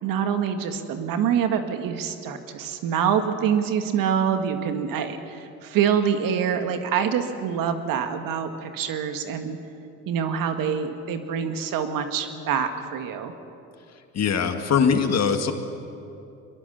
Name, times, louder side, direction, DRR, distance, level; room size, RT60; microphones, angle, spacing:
voice 1, 0.0-9.6 10.1-13.3, right 7 dB, 65° right, 7 dB, 1.8 m, -25 dB
voice 2, 14.1-15.5, left 6 dB, 45° left, 7 dB, 2.0 m, -21 dB
22.0 x 22.0 x 6.9 m, 2.8 s
supercardioid pair, 70°, 36 cm